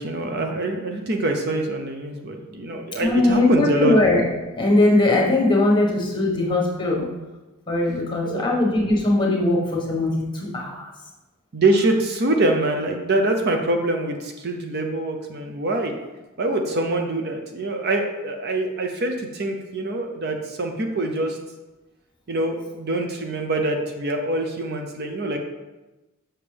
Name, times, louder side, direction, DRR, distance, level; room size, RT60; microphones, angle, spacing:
voice 1, 0.0-3.9 8.2-8.5 11.5-16.0 16.4-21.4 22.3-25.4, right 2 dB, 45° right, 4 dB, 0.6 m, -24 dB
voice 2, 3.0-4.3 4.5-7.1 7.7-10.9, left 2 dB, 20° left, -2 dB, 1.4 m, -20 dB
7.2 x 5.7 x 3.4 m, 1.1 s
head